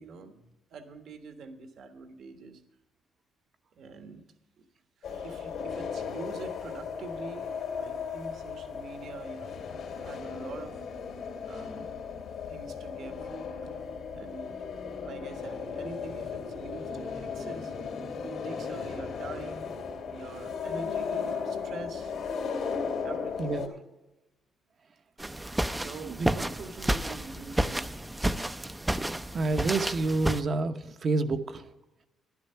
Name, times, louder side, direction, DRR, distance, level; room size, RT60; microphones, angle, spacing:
voice 1, 0.0-2.6 3.8-4.2 4.6-4.7 5.0-7.5 7.8-10.8 11.4-11.9 12.5-13.3 14.1-14.5 15.0-17.7 18.2-19.7 20.1-22.1 23.0-23.6 25.7-28.1, right 4 dB, 65° right, 7 dB, 1.4 m, -44 dB
sound 1, 5.0-23.7, left 6 dB, 75° left, 2.5 m, -36 dB
voice 2, 23.4-23.8 26.1-26.3 29.3-31.6, right 3 dB, 50° right, 8 dB, 0.9 m, -28 dB
sound 2, 25.2-30.4, right 1 dB, 10° right, 0.5 m, -31 dB
11.5 x 10.5 x 5.7 m, 1.0 s
cardioid pair, 90°, 0 cm